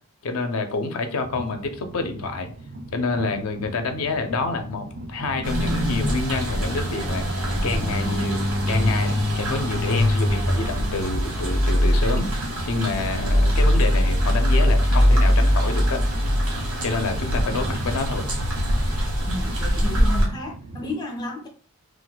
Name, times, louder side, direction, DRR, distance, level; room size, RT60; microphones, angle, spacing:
voice 1, 0.2-2.5 2.9-16.0 16.8-18.3, left 3 dB, 75° left, 0.5 m, -28 dB
Train, 1.2-20.9, right 2 dB, 55° right, 0.4 m, -39 dB
sound 1, 5.4-20.3, equal, 85° right, 1.1 m, -22 dB
voice 2, 19.2-21.5, left 1 dB, 20° left, 0.4 m, -32 dB
2.4 x 2.2 x 4.0 m
head